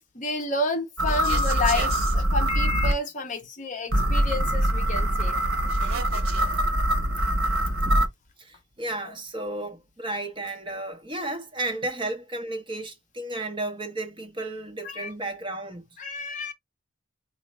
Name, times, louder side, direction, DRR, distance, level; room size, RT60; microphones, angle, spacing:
voice 1, 0.1-5.4 9.0-9.1 14.8-15.1 16.0-16.5, left 2 dB, 40° left, 0.6 m, -30 dB
sound 1, 1.0-2.9 3.9-8.1, right 1 dB, 85° right, 0.9 m, -23 dB
voice 2, 8.4-15.8, right 2 dB, 25° right, 0.8 m, -33 dB
4.2 x 2.5 x 3.0 m
head